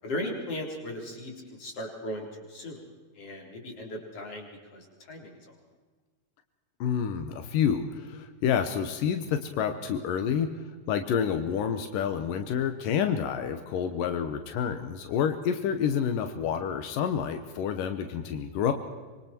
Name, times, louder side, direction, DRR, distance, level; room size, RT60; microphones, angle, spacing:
voice 1, 0.0-2.8 3.1-5.4, left 1 dB, 45° left, 1 dB, 5.0 m, -37 dB
voice 2, 6.8-10.5 10.9-18.7, left 8 dB, 90° left, 8 dB, 2.8 m, -28 dB
25.5 x 24.5 x 4.5 m, 1.4 s
omnidirectional pair, 3.7 m